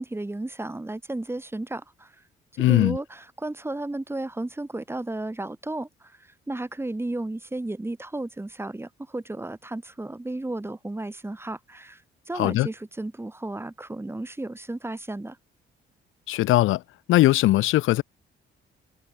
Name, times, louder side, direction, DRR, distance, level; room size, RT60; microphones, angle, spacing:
voice 1, 0.0-2.1 2.7-12.0 12.3-15.4, right 2 dB, 10° right, 2.3 m, -33 dB
voice 2, 2.6-3.0 12.3-12.7 16.3-16.8 17.1-18.0, left 16 dB, 85° left, 0.9 m, -20 dB
cardioid pair, 90°, 20 cm